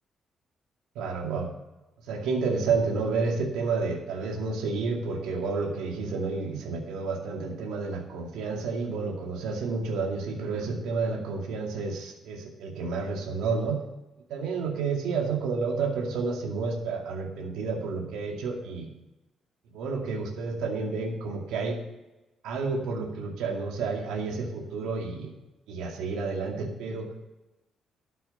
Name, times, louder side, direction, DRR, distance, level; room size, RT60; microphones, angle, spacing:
voice 1, 1.0-1.5 2.1-13.8 14.3-18.9 19.7-21.8 22.4-25.3 25.7-27.1, right 4 dB, 90° right, 2 dB, 2.2 m, -30 dB
12.0 x 7.0 x 6.7 m, 0.99 s
cardioid pair, 90°, 0 cm